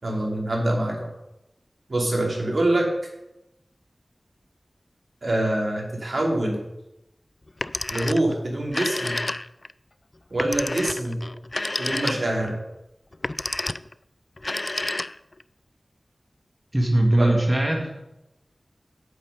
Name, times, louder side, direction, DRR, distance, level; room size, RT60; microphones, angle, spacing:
voice 1, 0.0-1.1 1.9-2.9 5.2-6.6 7.9-9.2 10.3-11.2 11.8-12.5 17.1-17.4, right 1 dB, 60° right, -1 dB, 3.0 m, -25 dB
Telephone, 7.5-8.3 8.6-9.7 10.4-12.5 13.1-13.9 14.4-15.4, left 2 dB, 35° left, 0.3 m, -29 dB
voice 2, 16.7-18.0, right 1 dB, 15° right, 1 dB, 1.7 m, -20 dB
8.3 x 8.0 x 5.4 m, 0.90 s
wide cardioid pair, 70°, 0 cm